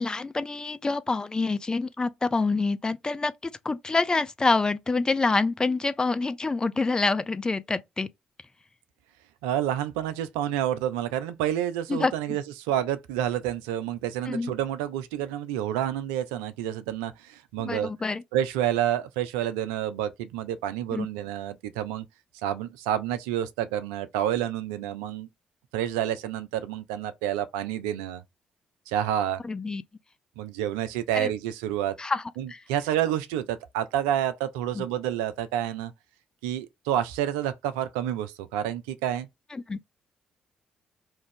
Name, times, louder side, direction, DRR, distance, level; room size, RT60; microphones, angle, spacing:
voice 1, 0.0-8.1 11.9-12.4 14.3-14.5 17.6-18.2 20.9-21.1 29.4-29.8 31.1-31.3 32.0-32.2 32.5-32.6 34.7-34.8 39.5-39.8, left 3 dB, 25° left, 0.4 m, -27 dB
voice 2, 9.4-17.9 18.3-22.0 22.4-25.3 25.7-28.2 28.9-29.4 30.4-32.0 32.4-35.9 36.4-39.3, right 11 dB, 70° right, 0.3 m, -29 dB
2.6 x 2.4 x 3.4 m
figure-of-eight pair, 40°, 3 cm